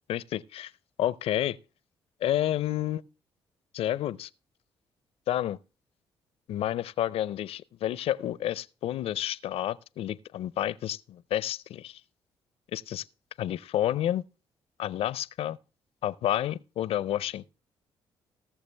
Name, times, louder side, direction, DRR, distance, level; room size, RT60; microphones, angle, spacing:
voice 1, 0.1-0.7 1.0-1.6 2.2-3.0 3.7-4.3 5.3-5.6 6.5-12.0 12.7-13.1 13.4-14.2 14.8-15.6 16.0-17.4, left 12 dB, 65° left, 0.5 m, -30 dB
19.0 x 6.6 x 3.3 m
hypercardioid pair, 55°, 11 cm